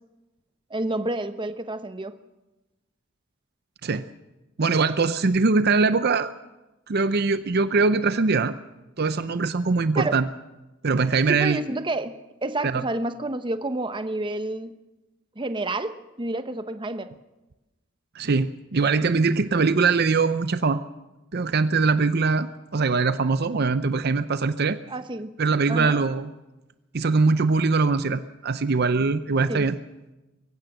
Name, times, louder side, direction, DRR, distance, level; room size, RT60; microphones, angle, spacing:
voice 1, 0.7-2.2 9.9-10.2 11.3-14.7 15.4-17.1 24.9-25.3 25.7-26.0 29.5-29.7, right 2 dB, 25° right, 10 dB, 0.9 m, -29 dB
voice 2, 4.6-6.3 6.9-8.5 9.0-10.3 10.8-11.6 12.6-12.8 18.1-20.8 21.3-24.8 25.4-26.3 26.9-29.8, right 4 dB, 55° right, 12 dB, 0.6 m, -22 dB
23.0 x 16.0 x 7.9 m, 1.1 s
head